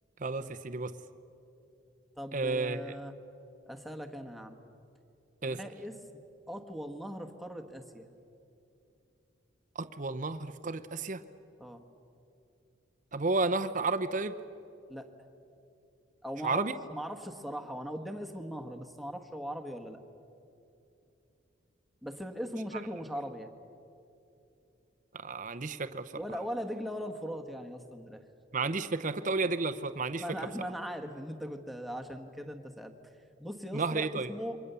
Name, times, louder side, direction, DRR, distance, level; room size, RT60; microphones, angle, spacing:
voice 1, 0.2-0.9 2.3-2.9 5.4-5.6 9.8-11.2 13.1-14.3 16.4-16.7 25.1-26.0 28.5-30.2 33.7-34.3, right 3 dB, 40° right, 8 dB, 0.8 m, -32 dB
voice 2, 2.2-3.1 3.7-4.6 5.5-8.1 11.6-11.8 14.9-15.1 16.2-20.0 22.0-23.5 26.1-28.2 30.1-32.9 33.4-34.6, equal, ahead, 6 dB, 1.3 m, -40 dB
28.5 x 24.0 x 6.9 m, 2.7 s
head